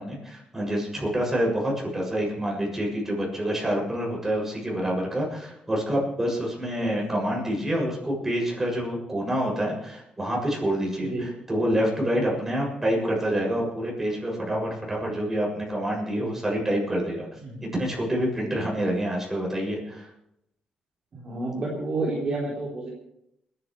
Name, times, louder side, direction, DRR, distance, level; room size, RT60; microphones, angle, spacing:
voice 1, 0.0-17.3 17.6-20.1, equal, 15° right, -2 dB, 7.2 m, -27 dB
voice 2, 11.0-11.3 17.4-17.6 21.1-22.9, right 2 dB, 40° right, -5 dB, 3.9 m, -30 dB
30.0 x 11.0 x 3.4 m, 0.80 s
cardioid pair, 120°, 2 cm